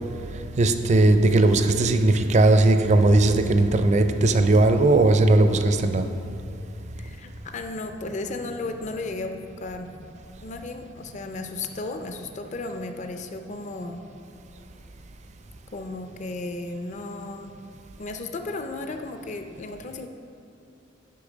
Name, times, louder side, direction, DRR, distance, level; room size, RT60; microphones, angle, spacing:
voice 1, 0.6-6.1, right 2 dB, 35° right, 8 dB, 0.4 m, -18 dB
voice 2, 7.0-9.9 10.4-14.0 15.7-17.5 18.0-20.1, left 2 dB, 40° left, 6 dB, 0.4 m, -34 dB
8.5 x 5.8 x 5.0 m, 2.7 s
head